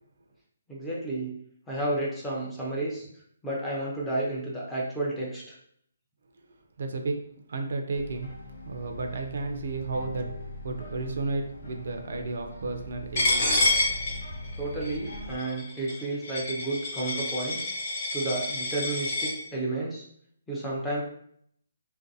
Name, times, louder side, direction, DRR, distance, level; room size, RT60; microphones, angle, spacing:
voice 1, 0.7-1.3 1.7-3.1 3.4-5.6 14.6-17.6 18.1-20.1 20.5-21.0, right 2 dB, 5° left, -6 dB, 0.4 m, -31 dB
voice 2, 6.8-7.2 7.5-8.3 8.6-13.7, right 3 dB, 60° right, 4 dB, 0.4 m, -33 dB
sound 1, 7.9-15.4, left 1 dB, 75° left, 0.7 m, -41 dB
Coin (dropping), 13.2-19.3, left 2 dB, 35° left, 0.9 m, -28 dB
2.5 x 2.2 x 2.6 m, 0.67 s
hypercardioid pair, 170°, 0 cm